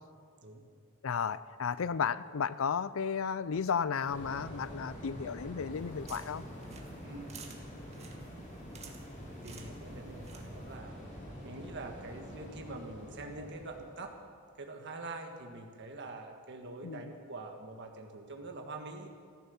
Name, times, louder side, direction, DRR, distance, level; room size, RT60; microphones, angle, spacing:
voice 1, 1.0-6.4 16.8-17.1, left 6 dB, 70° left, 17 dB, 0.5 m, -33 dB
sound 1, 4.1-14.3, equal, 40° left, 3.7 m, -46 dB
sound 2, 5.7-10.8, right 6 dB, 30° right, 1.8 m, -54 dB
voice 2, 7.0-7.4 9.4-11.0 11.4-14.2 14.6-19.1, right 2 dB, 55° right, 3 dB, 1.6 m, -45 dB
14.0 x 13.5 x 7.1 m, 2.1 s
head